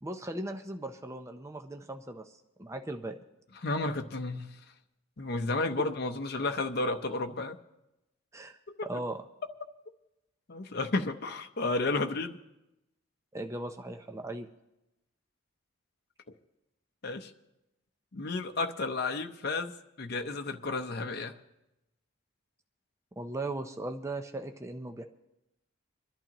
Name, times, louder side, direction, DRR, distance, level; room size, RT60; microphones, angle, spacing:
voice 1, 0.0-3.2 8.3-9.2 13.3-14.5 23.2-25.0, right 2 dB, 15° right, 6 dB, 0.5 m, -38 dB
voice 2, 3.6-4.6 5.2-7.6 8.8-8.9 10.5-12.4 17.0-17.3 18.1-19.7 20.0-21.3, left 3 dB, 55° left, 6 dB, 0.7 m, -32 dB
26.0 x 11.0 x 3.0 m, 0.93 s
head